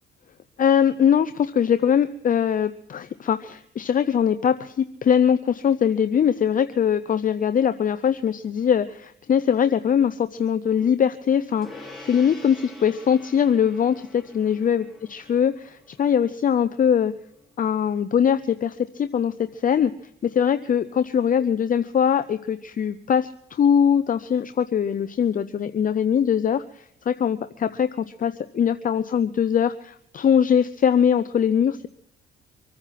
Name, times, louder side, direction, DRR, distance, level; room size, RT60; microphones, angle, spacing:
voice 1, 0.6-17.1 17.6-19.9 20.2-31.9, left 8 dB, 45° left, 12 dB, 0.6 m, -22 dB
Gong, 11.6-21.3, left 2 dB, ahead, 4.4 m, -48 dB
25.0 x 9.6 x 5.9 m, 0.71 s
cardioid pair, 90°, 20 cm